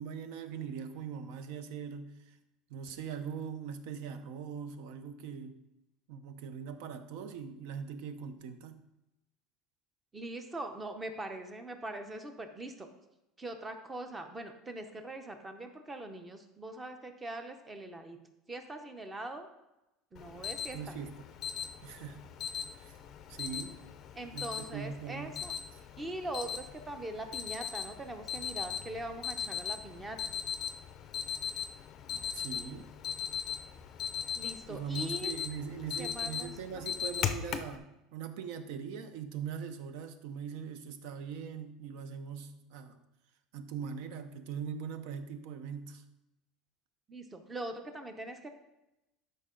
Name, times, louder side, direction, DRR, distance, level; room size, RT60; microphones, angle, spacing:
voice 1, 0.0-2.4 2.7-5.6 6.1-8.8 20.7-21.3 21.8-22.2 22.8-23.0 23.3-23.8 24.3-25.3 32.3-32.9 34.7-43.0 43.5-46.0, right 7 dB, 60° right, 10 dB, 0.8 m, -41 dB
voice 2, 10.1-12.9 13.4-18.2 18.5-19.5 20.1-20.8 24.2-25.5 26.0-30.3 34.4-35.4 36.0-36.8 47.1-48.5, right 1 dB, 10° right, 7 dB, 0.7 m, -42 dB
Alarm, 20.2-37.8, left 8 dB, 30° left, 0.5 m, -39 dB
12.5 x 5.4 x 3.8 m, 0.95 s
cardioid pair, 175°, 0 cm